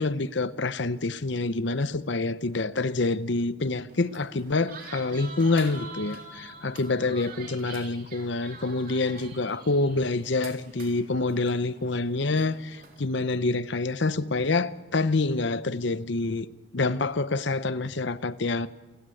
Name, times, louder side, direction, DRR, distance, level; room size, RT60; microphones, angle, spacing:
voice 1, 0.0-16.5 16.7-18.7, left 3 dB, 60° left, 0.8 m, -27 dB
sound 1, 3.9-13.0, right 3 dB, 45° right, 3.6 m, -46 dB
28.5 x 14.0 x 9.8 m
head